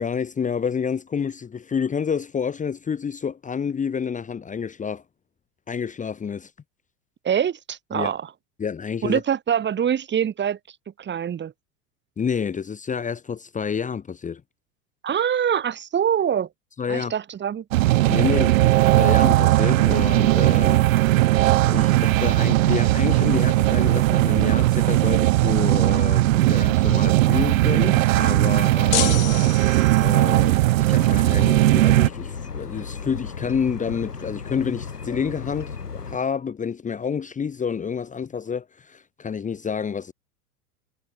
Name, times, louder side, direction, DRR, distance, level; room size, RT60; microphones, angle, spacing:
voice 1, 0.0-5.0 5.7-6.5 7.9-8.1 8.6-9.2 12.2-14.4 16.8-17.1 18.1-20.9 21.1-21.4 21.7-29.1 30.0-40.1, left 6 dB, 15° left, 1.7 m, -29 dB
voice 2, 7.2-8.2 9.0-10.6 11.0-11.5 15.0-16.5 16.9-17.6, right 8 dB, 25° right, 2.7 m, -24 dB
sound 1, 17.7-32.1, right 17 dB, 55° right, 1.8 m, -18 dB
sound 2, 28.9-30.3, left 17 dB, 55° left, 1.9 m, -28 dB
sound 3, 31.0-36.2, left 5 dB, 80° left, 4.0 m, -35 dB
figure-of-eight pair, 85°, 47 cm